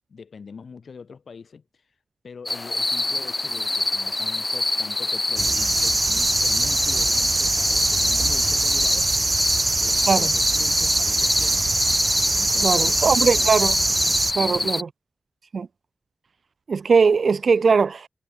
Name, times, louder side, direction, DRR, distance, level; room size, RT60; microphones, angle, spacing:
voice 1, 0.1-1.6 2.2-9.1 9.8-11.7 12.3-13.5 14.4-14.7, left 5 dB, 75° left, 8.0 m, -42 dB
sound 1, 2.5-14.8, left 2 dB, 30° left, 0.5 m, -26 dB
sound 2, 5.4-14.3, right 3 dB, 40° right, 1.3 m, -23 dB
voice 2, 12.6-13.7 14.4-14.9 15.5-15.7 16.7-18.1, right 5 dB, 70° right, 0.4 m, -20 dB
cardioid pair, 65°, 0 cm